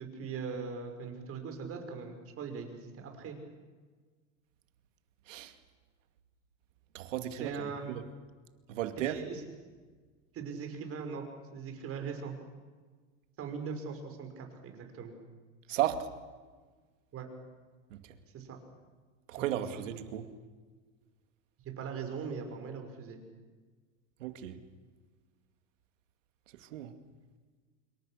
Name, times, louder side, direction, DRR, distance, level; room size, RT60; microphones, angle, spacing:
voice 1, 0.0-3.4 7.3-7.8 9.0-9.4 10.3-11.2 11.5-12.3 13.4-15.2 17.1-17.3 18.3-18.6 19.4-19.6 21.6-23.2, right 5 dB, 35° right, 5.8 m, -40 dB
voice 2, 6.9-8.0 8.7-9.2 15.7-16.1 19.3-20.3 24.2-24.6 26.6-26.9, right 12 dB, 85° right, 2.4 m, -34 dB
26.5 x 23.5 x 6.5 m
supercardioid pair, 125°, 37 cm